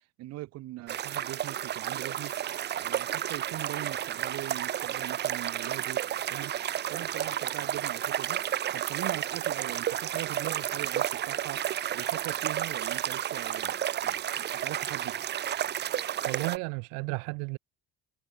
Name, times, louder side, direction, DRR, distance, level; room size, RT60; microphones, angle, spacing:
voice 1, 0.2-2.4 2.8-6.0 6.3-6.5 6.9-8.4 8.7-11.6 11.9-13.8 14.0-15.2, right 17 dB, 60° right, 1.1 m, -41 dB
sound 1, 0.9-16.6, right 11 dB, 35° right, 0.8 m, -32 dB
voice 2, 16.3-17.6, right 34 dB, 85° right, 0.7 m, -33 dB
cardioid pair, 125°, 29 cm